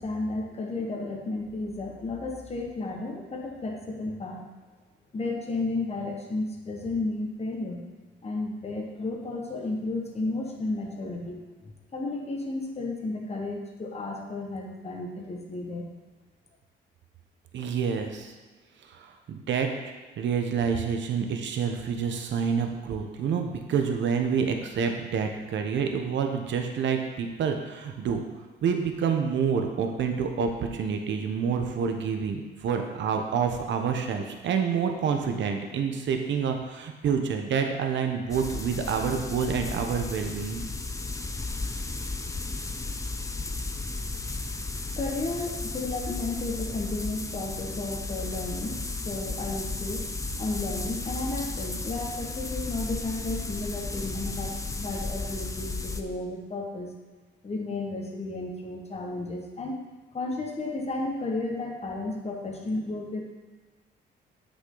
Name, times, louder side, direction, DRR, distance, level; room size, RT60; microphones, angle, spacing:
voice 1, 0.0-4.4 5.1-7.8 8.2-11.4 11.9-15.9 44.9-50.0 50.4-56.9 57.4-59.7 60.1-63.2, left 2 dB, 30° left, 0 dB, 1.5 m, -33 dB
voice 2, 17.5-18.3 18.9-28.2 28.6-40.6, right 6 dB, 70° right, 4 dB, 1.0 m, -28 dB
sound 1, 38.3-56.0, left 3 dB, 15° left, 0.6 m, -34 dB
8.4 x 6.3 x 4.0 m, 1.3 s
cardioid pair, 90°, 20 cm